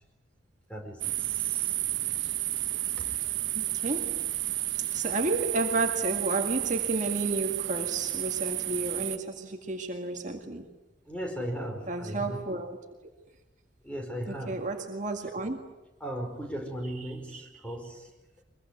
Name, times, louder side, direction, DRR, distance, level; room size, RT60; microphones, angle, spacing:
voice 1, 0.7-1.8 11.1-12.4 13.8-14.6 16.0-18.1, right 1 dB, 5° left, 5.1 m, -37 dB
sound 1, 1.0-9.2, right 15 dB, 75° right, 1.4 m, -31 dB
voice 2, 3.5-4.3 4.7-10.7 11.9-12.8 14.3-15.6 17.0-17.5, right 2 dB, 40° right, 2.0 m, -32 dB
24.0 x 22.5 x 9.5 m
head